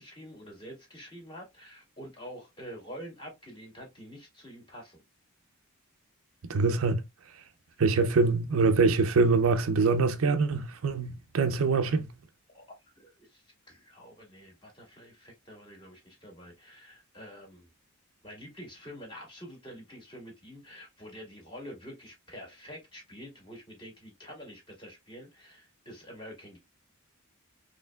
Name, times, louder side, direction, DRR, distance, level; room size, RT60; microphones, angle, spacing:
voice 1, 0.0-5.0 12.5-12.6 12.9-17.7 18.2-26.6, equal, 20° left, 1.7 m, -47 dB
voice 2, 6.5-7.0 7.8-12.1, right 4 dB, 70° right, 0.5 m, -24 dB
4.2 x 3.1 x 2.3 m
head